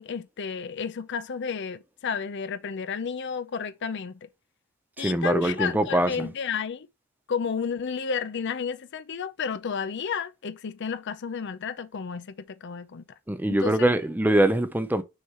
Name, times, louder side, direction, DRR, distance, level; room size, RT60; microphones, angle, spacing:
voice 1, 0.0-4.2 5.0-6.9 7.3-13.0 13.5-13.9, left 6 dB, 50° left, 0.5 m, -32 dB
voice 2, 5.0-6.3 13.3-15.0, right 1 dB, 10° right, 0.5 m, -23 dB
6.3 x 3.2 x 5.5 m
head